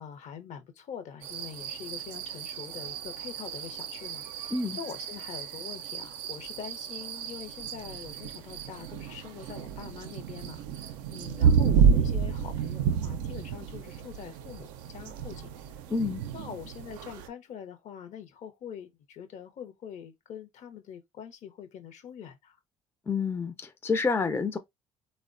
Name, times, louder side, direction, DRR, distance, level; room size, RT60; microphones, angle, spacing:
voice 1, 0.0-15.8 16.3-22.6, left 8 dB, 60° left, 0.7 m, -44 dB
sound 1, 1.2-17.3, right 7 dB, 80° right, 0.4 m, -30 dB
voice 2, 15.9-16.2 23.1-24.6, left 4 dB, 15° left, 0.4 m, -28 dB
3.3 x 2.1 x 2.4 m
hypercardioid pair, 65°, 14 cm